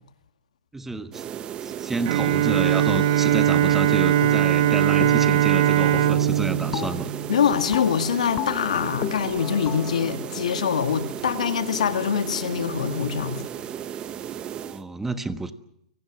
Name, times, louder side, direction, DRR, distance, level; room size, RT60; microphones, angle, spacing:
voice 1, 0.7-1.2 1.6-7.1 14.5-15.5, right 3 dB, 10° right, 1.3 m, -30 dB
sound 1, 1.1-14.8, right 10 dB, 25° right, 1.1 m, -35 dB
Bowed string instrument, 2.1-7.9, right 11 dB, 55° right, 1.3 m, -21 dB
sound 2, 4.2-4.7 5.0-5.5 5.8-11.6, left 15 dB, 40° left, 1.1 m, -35 dB
voice 2, 7.3-13.4, left 7 dB, 80° left, 2.0 m, -24 dB
29.5 x 18.5 x 6.1 m
hypercardioid pair, 130°, 4 cm